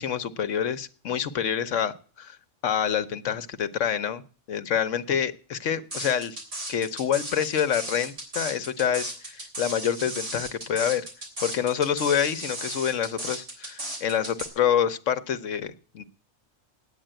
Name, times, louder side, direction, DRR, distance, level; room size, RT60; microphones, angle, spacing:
voice 1, 0.0-2.4 2.6-4.2 4.5-6.4 6.7-11.1 11.4-16.0, left 8 dB, 75° left, 10 dB, 1.2 m, -27 dB
sound 1, 5.9-14.5, right 1 dB, 65° right, 3.9 m, -35 dB
9.1 x 9.1 x 8.8 m, 0.41 s
omnidirectional pair, 1.3 m